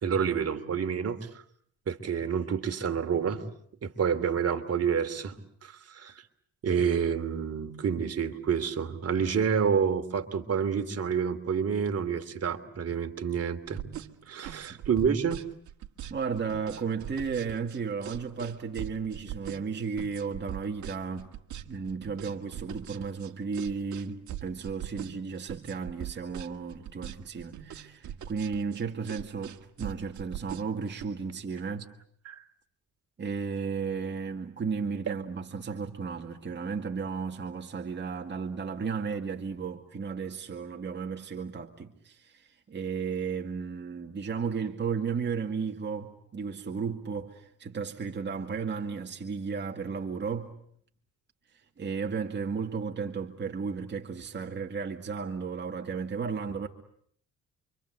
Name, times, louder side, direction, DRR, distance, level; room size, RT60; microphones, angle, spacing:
voice 1, 0.0-1.2 1.9-3.4 3.8-6.1 6.6-13.8 14.3-15.4 32.2-32.4 35.1-35.2, right 7 dB, 55° right, 2.9 m, -28 dB
sound 1, 13.7-31.1, right 11 dB, 70° right, 1.8 m, -41 dB
voice 2, 16.1-21.3 21.7-31.8 33.2-50.5 51.8-56.7, right 5 dB, 35° right, 2.2 m, -34 dB
28.5 x 25.0 x 8.0 m
cardioid pair, 90°, 30 cm